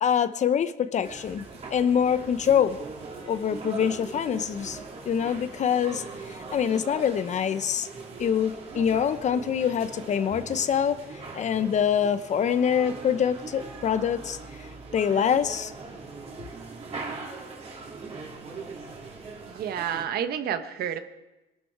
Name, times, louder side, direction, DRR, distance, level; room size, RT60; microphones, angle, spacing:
voice 1, 0.0-1.4 1.7-2.8 3.2-4.8 5.0-7.9 8.2-11.0 11.3-14.4 14.9-15.7, left 8 dB, 45° left, 13 dB, 0.8 m, -25 dB
sound 1, 1.0-20.0, right 3 dB, 35° right, 2.9 m, -40 dB
voice 2, 19.4-21.0, right 9 dB, 65° right, 8 dB, 1.3 m, -30 dB
21.5 x 12.0 x 4.7 m, 1.0 s
cardioid pair, 110°, 17 cm